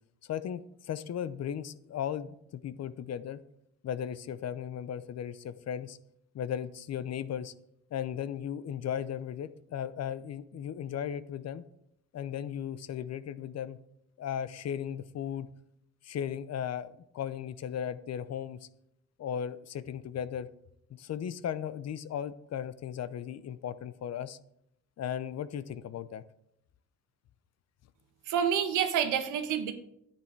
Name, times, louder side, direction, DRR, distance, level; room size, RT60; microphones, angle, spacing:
voice 1, 0.2-3.4 3.8-6.0 6.3-7.5 7.9-11.6 12.1-13.8 14.2-15.5 16.0-18.7 19.2-20.5 20.9-24.4 25.0-26.2, left 9 dB, 60° left, 15 dB, 0.7 m, -36 dB
voice 2, 28.3-29.7, right 8 dB, 80° right, 8 dB, 1.3 m, -28 dB
10.5 x 8.9 x 4.6 m, 0.77 s
cardioid pair, 90°, 30 cm